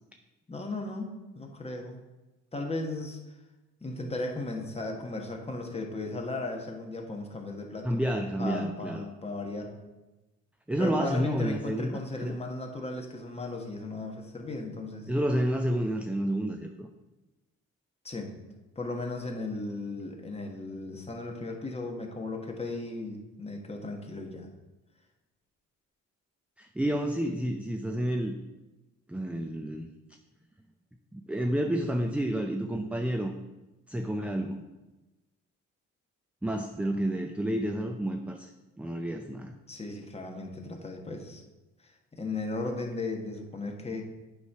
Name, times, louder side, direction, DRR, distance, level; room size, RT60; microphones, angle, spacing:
voice 1, 0.5-2.0 2.5-3.2 3.8-8.0 8.4-9.8 10.8-15.1 18.0-18.3 18.7-24.5 39.7-41.4 41.8-44.0, left 2 dB, 20° left, 1 dB, 1.3 m, -36 dB
voice 2, 7.8-9.0 10.7-12.4 15.1-16.9 26.6-28.4 29.1-29.9 31.1-33.3 33.9-34.6 36.4-38.5 38.8-39.5, right 1 dB, 5° right, 4 dB, 0.4 m, -30 dB
8.3 x 3.2 x 5.6 m, 1.1 s
cardioid pair, 90°, 30 cm